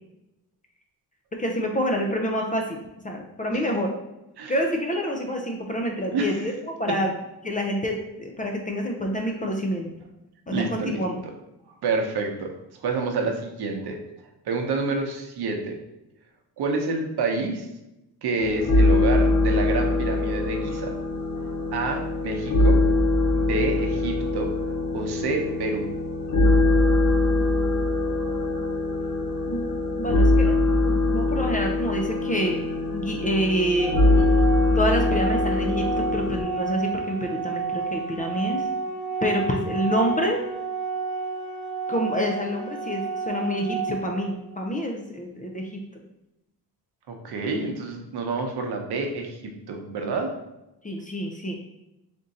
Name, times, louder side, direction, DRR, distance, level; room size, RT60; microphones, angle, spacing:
voice 1, 1.3-2.8 3.0-3.9 4.5-7.1 7.4-9.9 10.5-11.2 29.5-29.7 30.0-32.6 32.9-34.0 34.8-38.6 39.2-40.4 41.9-45.8 50.8-51.5, equal, 20° left, 1 dB, 0.3 m, -27 dB
voice 2, 6.1-6.4 10.5-11.0 11.7-12.5 12.8-14.0 14.5-15.8 16.6-17.6 18.2-20.9 21.7-22.8 23.3-24.5 24.9-25.9 47.1-50.3, right 3 dB, 75° right, 3 dB, 0.8 m, -28 dB
sound 1, 18.4-36.4, left 2 dB, 45° left, 0.9 m, -22 dB
Organ, 33.8-44.8, right 5 dB, 10° right, 1.0 m, -31 dB
3.6 x 2.6 x 4.0 m, 0.93 s
wide cardioid pair, 175°, 39 cm